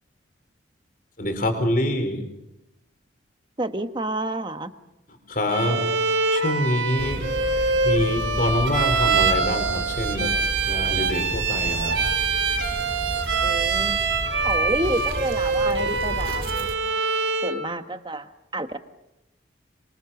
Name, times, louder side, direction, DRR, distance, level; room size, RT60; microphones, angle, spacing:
voice 1, 1.2-2.3 5.1-6.0 6.3-7.3 7.8-12.0, left 1 dB, 45° left, 7 dB, 4.4 m, -26 dB
voice 2, 3.6-4.7 13.4-14.0 14.4-16.5 17.4-18.8, right 1 dB, 25° right, 9 dB, 1.3 m, -29 dB
Bowed string instrument, 5.5-17.6, right 4 dB, 85° right, 3.6 m, -24 dB
sound 1, 7.0-16.7, equal, 45° right, 2.2 m, -33 dB
25.5 x 24.5 x 7.1 m, 0.90 s
head